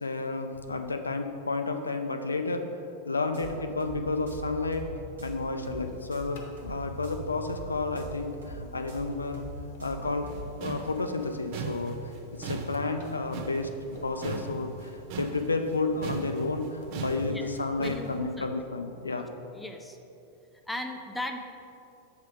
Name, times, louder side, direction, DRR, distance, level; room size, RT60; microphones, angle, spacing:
voice 1, 0.0-2.7 3.1-4.9 5.2-9.4 9.8-12.0 12.3-19.3, left 3 dB, 75° left, 6 dB, 0.3 m, -31 dB
sound 1, 3.2-10.4, right 1 dB, 70° right, 1.2 m, -42 dB
sound 2, 5.7-17.6, right 1 dB, 55° left, 0.8 m, -52 dB
sound 3, 10.0-18.2, right 4 dB, 45° right, 0.5 m, -38 dB
voice 2, 17.8-18.7 19.1-19.2 19.5-20.0 20.7-21.4, left 1 dB, 5° left, 3 dB, 0.5 m, -37 dB
7.2 x 3.4 x 4.9 m, 2.8 s
figure-of-eight pair, 90°, 0 cm